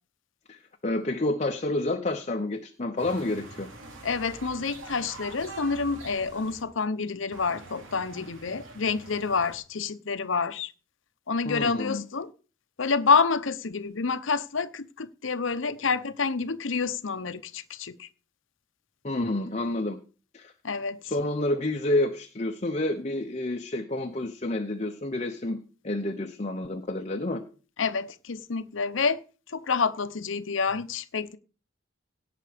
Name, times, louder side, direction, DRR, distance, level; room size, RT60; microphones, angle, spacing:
voice 1, 0.5-3.7 11.5-12.0 19.0-20.0 20.3-20.5 21.0-25.6 25.8-27.4, left 1 dB, 35° left, 0.8 m, -29 dB
sound 1, 3.0-6.6 7.3-9.6, right 2 dB, 80° right, 3.1 m, -45 dB
voice 2, 4.0-10.7 11.3-12.3 12.8-18.1 20.6-21.0 27.8-29.2 29.5-31.4, left 5 dB, 75° left, 0.8 m, -28 dB
17.5 x 5.9 x 5.1 m
head